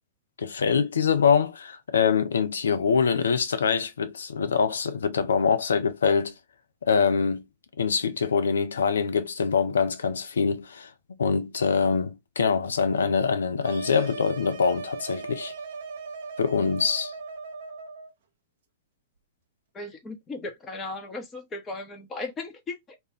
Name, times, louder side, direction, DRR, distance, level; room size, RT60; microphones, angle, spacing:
voice 1, 0.4-6.3 6.8-7.4 7.8-10.9 11.2-15.5 16.4-17.1, left 6 dB, 80° left, 0.5 m, -24 dB
sound 1, 13.6-18.1, right 4 dB, 65° right, 0.7 m, -38 dB
voice 2, 19.7-23.0, left 2 dB, 20° left, 0.9 m, -36 dB
2.5 x 2.2 x 3.4 m
hypercardioid pair, 105°, 0 cm